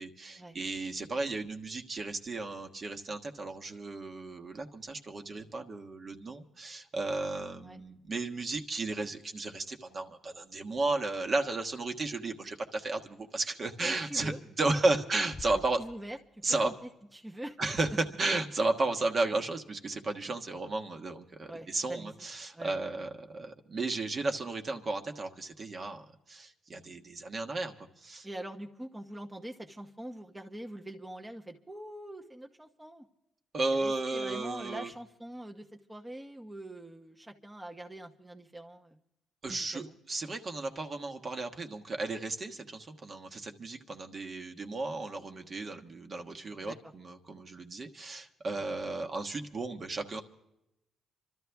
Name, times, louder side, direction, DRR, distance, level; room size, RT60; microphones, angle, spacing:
voice 1, 0.0-15.8 16.4-16.7 17.6-28.3 33.5-34.9 39.4-50.2, right 2 dB, 40° right, 4 dB, 1.4 m, -34 dB
voice 2, 13.8-14.4 14.9-15.1 15.8-16.7 17.1-17.6 21.5-22.2 22.5-22.8 28.2-33.1 33.7-39.0 39.5-39.9 46.6-46.8 48.6-48.7, right 1 dB, 10° right, 2 dB, 1.0 m, -44 dB
Bass drum, 15.3-16.8, left 4 dB, 30° left, 0.8 m, -49 dB
26.5 x 13.0 x 3.5 m, 0.87 s
cardioid pair, 90°, 0 cm